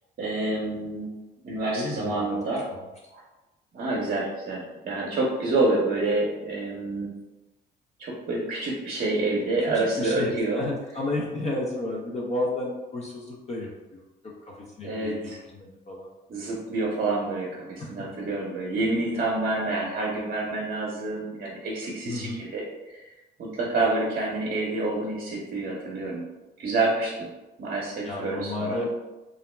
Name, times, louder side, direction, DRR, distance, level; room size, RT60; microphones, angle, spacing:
voice 1, 0.2-1.1 1.4-2.6 3.1-3.2 3.7-7.1 8.0-10.6 14.8-15.4 16.3-23.1 23.4-26.3 26.6-27.3 27.6-28.9, right 2 dB, 50° right, -4 dB, 0.7 m, -28 dB
voice 2, 1.8-2.4 2.7-2.8 9.3-16.1 17.8-18.1 22.0-22.4 28.0-28.9, left 2 dB, 35° left, -3 dB, 0.5 m, -33 dB
2.4 x 2.0 x 3.1 m, 1.1 s
cardioid pair, 90°, 20 cm